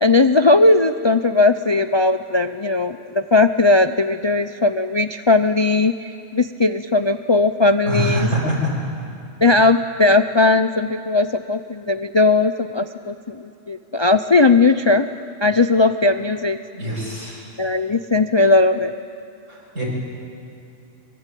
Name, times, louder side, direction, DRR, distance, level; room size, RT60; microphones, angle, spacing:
voice 1, 0.0-8.3 9.4-15.1 15.4-16.6 17.6-18.9, left 3 dB, 35° left, 9 dB, 0.5 m, -18 dB
voice 2, 7.8-8.8 16.7-17.5 19.5-19.8, equal, 75° right, -3 dB, 7.7 m, -24 dB
25.0 x 23.5 x 9.2 m, 2.7 s
omnidirectional pair, 1.3 m